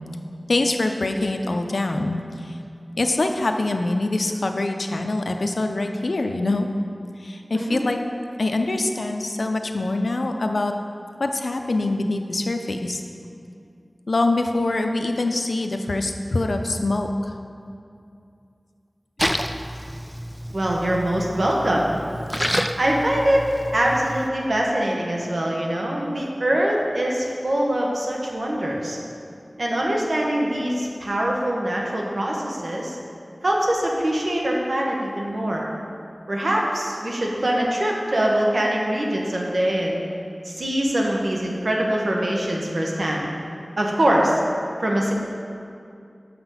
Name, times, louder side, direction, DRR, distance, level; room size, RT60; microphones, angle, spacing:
voice 1, 0.5-2.6 3.0-6.7 7.2-8.0 8.4-10.7 11.2-13.0 14.1-17.3, left 2 dB, 85° left, 5 dB, 0.5 m, -24 dB
Splash splatter, 19.2-24.3, equal, ahead, 0.4 m, -29 dB
voice 2, 20.5-22.0 22.8-23.5 23.7-29.0 29.6-33.0 33.4-35.7 36.3-40.0 40.4-43.2 43.8-44.4 44.8-45.1, right 1 dB, 75° right, -2 dB, 1.2 m, -23 dB
7.0 x 5.9 x 5.6 m, 2.4 s
wide cardioid pair, 60°, 0 cm